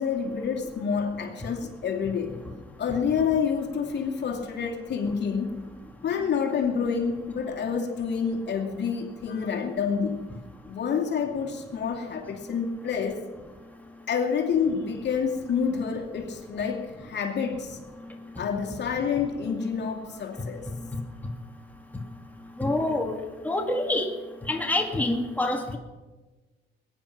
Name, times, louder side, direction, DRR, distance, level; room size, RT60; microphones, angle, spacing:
voice 1, 0.0-2.4 2.8-5.6 6.0-10.3 10.7-13.2 14.1-17.8 18.4-20.7, left 6 dB, 60° left, 3 dB, 2.5 m, -28 dB
voice 2, 22.6-23.1 23.4-24.1 24.5-25.8, left 2 dB, 10° left, 2 dB, 2.1 m, -26 dB
21.0 x 10.0 x 5.9 m, 1.2 s
cardioid pair, 90°, 20 cm